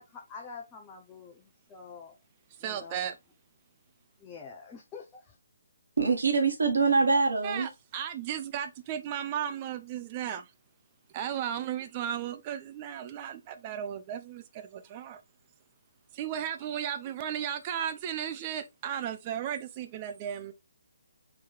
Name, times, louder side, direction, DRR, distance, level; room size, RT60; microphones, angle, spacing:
voice 1, 0.0-2.2 2.6-3.1 4.2-5.3, left 5 dB, 20° left, 0.7 m, -46 dB
voice 2, 2.6-3.1 7.4-10.5 11.1-15.2 16.1-20.5, right 9 dB, 30° right, 0.7 m, -35 dB
voice 3, 6.0-7.7, right 4 dB, 75° right, 1.9 m, -24 dB
4.5 x 3.1 x 3.5 m
figure-of-eight pair, 145°, 0 cm